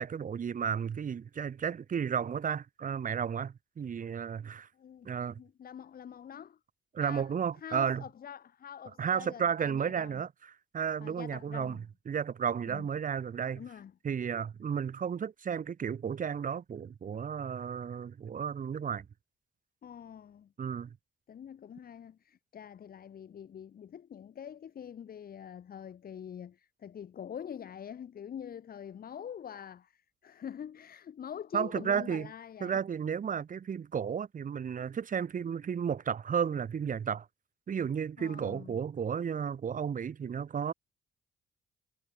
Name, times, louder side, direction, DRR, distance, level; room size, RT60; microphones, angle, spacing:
voice 1, 0.0-4.7 5.1-5.4 6.9-8.0 9.0-13.6 14.0-19.1 20.6-21.0 31.5-32.3 32.6-37.3 37.7-40.7, right 7 dB, 50° right, 1.9 m, -33 dB
voice 2, 4.7-6.6 7.0-10.2 11.0-11.9 12.7-12.9 13.6-13.9 19.8-20.5 21.3-32.8 38.2-38.8, left 8 dB, 60° left, 3.7 m, -45 dB
supercardioid pair, 55°, 17 cm